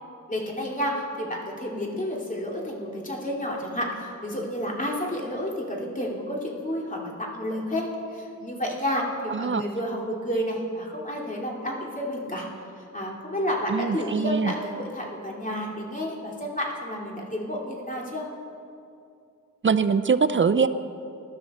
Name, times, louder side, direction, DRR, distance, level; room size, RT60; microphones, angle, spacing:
voice 1, 0.3-12.5 12.8-18.2, equal, 25° left, -2 dB, 2.7 m, -30 dB
voice 2, 9.3-9.6 13.7-14.5 19.6-20.7, right 5 dB, 40° right, 13 dB, 0.5 m, -22 dB
21.0 x 12.0 x 4.3 m, 2.6 s
wide cardioid pair, 85°, 31 cm